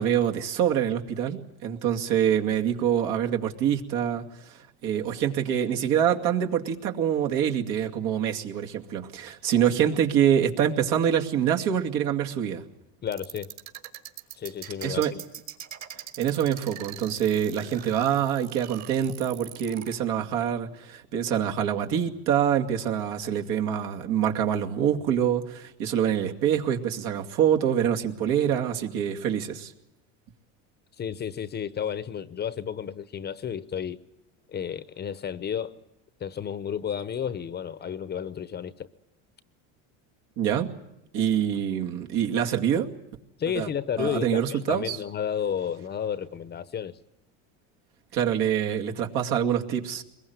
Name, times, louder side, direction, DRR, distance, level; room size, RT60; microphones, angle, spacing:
voice 1, 0.0-12.6 14.8-15.1 16.2-29.7 40.4-40.7 41.1-42.9 43.6-43.7 44.0-45.0 48.1-50.0, right 9 dB, 70° right, 2.5 m, -25 dB
voice 2, 13.0-13.5 14.3-15.2 31.0-34.0 34.5-35.8 36.2-38.9 43.4-47.0, left 8 dB, 30° left, 0.9 m, -32 dB
sound 1, 13.1-19.9, right 10 dB, 50° right, 3.5 m, -42 dB
23.0 x 21.0 x 9.5 m
cardioid pair, 125°, 35 cm